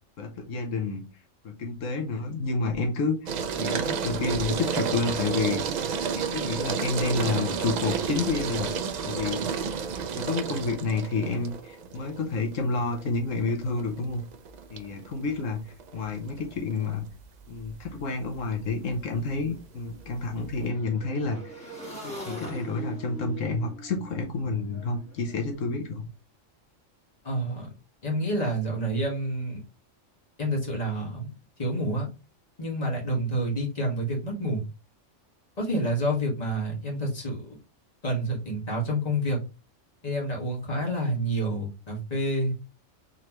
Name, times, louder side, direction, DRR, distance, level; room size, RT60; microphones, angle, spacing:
voice 1, 0.2-1.1 1.4-3.3 3.6-5.9 6.2-8.7 9.0-9.4 10.2-14.2 14.7-15.6 15.9-17.1 17.5-21.7 22.0-26.1, left 3 dB, 85° left, 3 dB, 1.2 m, -29 dB
sound 1, 3.3-20.7, right 6 dB, 85° right, 0.3 m, -32 dB
Motorcycle / Engine, 17.9-18.0 18.3-25.4, right 1 dB, 5° left, 1.5 m, -42 dB
voice 2, 27.2-27.7 28.0-29.6 30.4-31.3 31.6-32.1 32.6-34.6 35.6-37.6 38.0-39.4 40.0-42.5, right 1 dB, 30° left, -2 dB, 1.5 m, -28 dB
4.0 x 3.2 x 3.0 m, 0.30 s
omnidirectional pair, 1.3 m